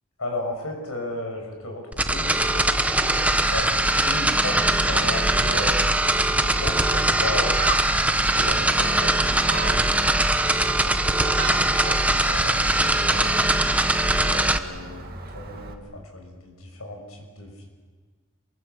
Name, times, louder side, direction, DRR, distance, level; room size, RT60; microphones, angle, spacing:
voice 1, 0.2-5.8 6.2-7.5 8.3-10.0 10.8-13.4 14.1-17.7, left 1 dB, 80° left, 2 dB, 6.5 m, -35 dB
sound 1, 1.9-14.6, right 1 dB, 5° right, 0.9 m, -21 dB
Gull seagull, 4.3-15.7, right 3 dB, 45° right, 2.1 m, -37 dB
27.0 x 23.5 x 7.0 m, 1.5 s
head